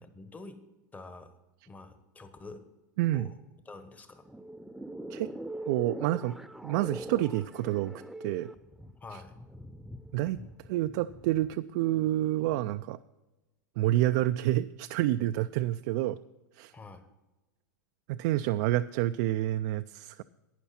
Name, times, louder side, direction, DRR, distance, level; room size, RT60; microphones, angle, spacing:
voice 1, 0.0-0.6 0.9-1.3 1.7-2.6 3.1-3.4 3.6-4.3 9.0-9.3 16.7-17.1, left 3 dB, 15° left, 9 dB, 1.2 m, -47 dB
voice 2, 3.0-3.3 5.1-5.3 5.7-6.4 6.6-8.5 10.1-10.4 10.7-13.0 13.8-16.2 16.6-16.7 18.1-20.2, right 15 dB, 60° right, 9 dB, 0.4 m, -28 dB
sound 1, 4.1-12.8, right 1 dB, ahead, 0.5 m, -43 dB
12.0 x 9.2 x 4.3 m, 1.1 s
hypercardioid pair, 110°, 10 cm